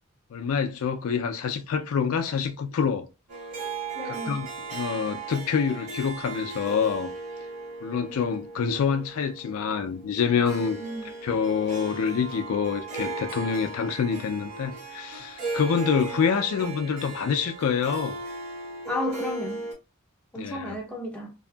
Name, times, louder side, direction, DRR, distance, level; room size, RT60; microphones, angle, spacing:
voice 1, 0.3-3.1 4.1-4.5 4.7-7.1 7.8-10.8 11.2-18.2 20.4-20.8, left 6 dB, 75° left, 0.3 m, -26 dB
Harp, 3.3-19.7, right 3 dB, 85° right, 1.3 m, -37 dB
voice 2, 4.0-4.4 10.8-11.1 18.9-19.6 20.3-21.3, left 1 dB, 5° left, 0.6 m, -32 dB
2.6 x 2.5 x 2.2 m
head